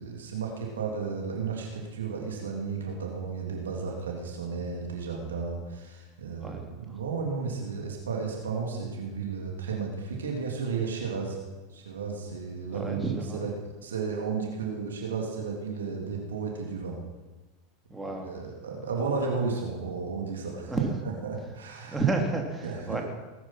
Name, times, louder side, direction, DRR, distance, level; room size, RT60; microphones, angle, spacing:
voice 1, 0.0-11.4 11.7-13.0 13.3-13.5 13.8-17.0 18.2-20.7 21.2-22.0 22.6-23.0, right 5 dB, 85° right, 0 dB, 3.2 m, -33 dB
voice 2, 6.4-7.0 12.7-13.5 17.9-18.4 20.7-21.0 21.8-23.0, right 4 dB, 10° right, 1 dB, 3.2 m, -31 dB
19.0 x 10.0 x 6.0 m, 1.2 s
hypercardioid pair, 95°, 0 cm